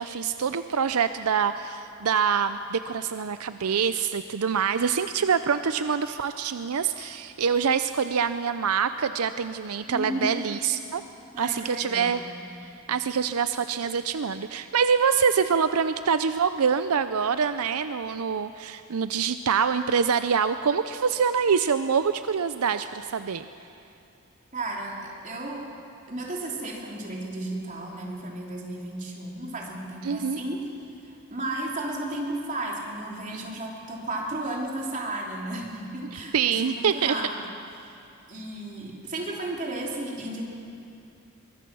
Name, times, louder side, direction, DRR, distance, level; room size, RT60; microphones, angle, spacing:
voice 1, 0.0-11.0 11.4-12.2 12.6-23.5 30.0-30.4 36.3-37.1, right 6 dB, 80° right, 11 dB, 0.6 m, -25 dB
voice 2, 9.9-10.5 11.3-12.2 24.5-25.6 26.1-30.7 31.0-36.3 36.6-37.4 38.3-40.4, right 1 dB, 35° right, -2 dB, 3.5 m, -33 dB
23.0 x 22.0 x 6.3 m, 2.6 s
head